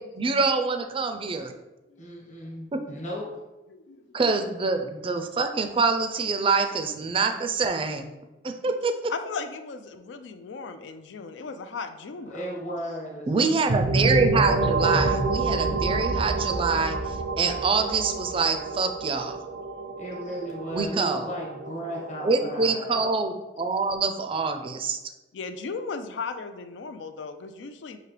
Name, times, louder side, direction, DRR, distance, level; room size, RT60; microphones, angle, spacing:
voice 1, 0.0-1.5 2.7-2.8 4.1-8.1 8.4-9.1 13.3-19.4 20.7-21.3 22.2-25.0, right 4 dB, 30° right, 7 dB, 0.4 m, -25 dB
voice 2, 2.0-3.3 12.3-13.3 20.0-23.0, equal, 40° left, -2 dB, 1.2 m, -35 dB
voice 3, 3.7-4.0 9.1-12.5 19.9-20.0 25.3-28.0, left 4 dB, 85° left, 9 dB, 0.4 m, -36 dB
sound 1, 13.7-23.3, right 3 dB, 85° right, 0.6 m, -28 dB
5.9 x 2.7 x 3.2 m, 1.1 s
head